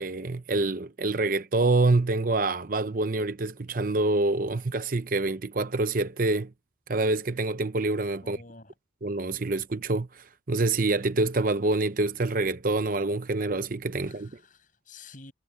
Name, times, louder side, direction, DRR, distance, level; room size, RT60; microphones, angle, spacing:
voice 1, 0.0-6.5 6.9-8.4 9.0-14.3, right 2 dB, 45° right, 0.7 m, -26 dB
voice 2, 8.2-8.7 14.0-15.3, left 3 dB, 45° left, 7.2 m, -49 dB
head